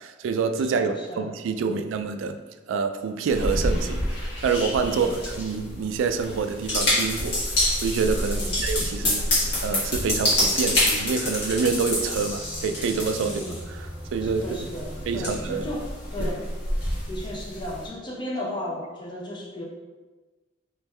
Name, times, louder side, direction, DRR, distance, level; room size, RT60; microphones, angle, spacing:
voice 1, 0.0-2.4 2.7-7.4 7.8-9.2 9.6-13.4 13.7-13.8 14.1-14.4 15.1-15.7, right 5 dB, 85° right, 8 dB, 0.3 m, -27 dB
voice 2, 0.6-1.3 1.6-1.9 4.8-5.1 8.3-8.6 13.2-13.6 14.2-16.5 17.1-19.6, left 1 dB, 25° left, -3 dB, 0.7 m, -35 dB
sound 1, 3.3-17.9, left 1 dB, 60° left, 1.5 m, -27 dB
3.4 x 3.1 x 3.3 m, 1.3 s
head